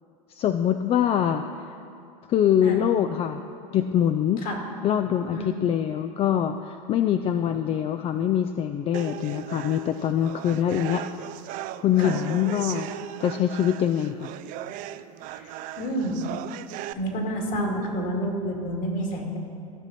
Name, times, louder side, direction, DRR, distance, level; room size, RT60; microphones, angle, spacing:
voice 1, 0.3-1.7 2.3-3.4 3.7-4.4 4.8-11.0 11.8-12.9 13.2-14.3, left 10 dB, 35° left, 8 dB, 0.4 m, -24 dB
sound 1, 8.9-16.9, right 13 dB, 50° right, 0.4 m, -37 dB
voice 2, 15.3-16.3 17.0-19.4, right 1 dB, 50° left, 1 dB, 2.3 m, -29 dB
14.5 x 6.0 x 4.2 m, 2.6 s
hypercardioid pair, 95°, 18 cm